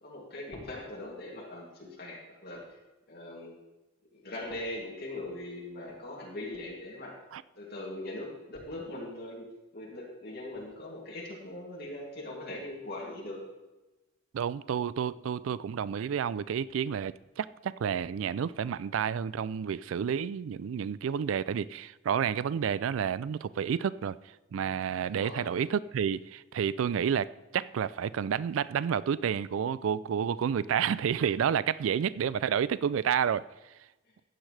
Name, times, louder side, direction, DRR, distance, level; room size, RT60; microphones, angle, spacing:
voice 1, 0.0-2.6 3.1-3.5 4.1-7.1 7.5-13.4 25.0-25.6, left 1 dB, 50° left, 2.6 m, -41 dB
voice 2, 14.3-24.2 24.5-33.4, right 8 dB, 75° right, 0.3 m, -30 dB
15.5 x 10.0 x 3.3 m
head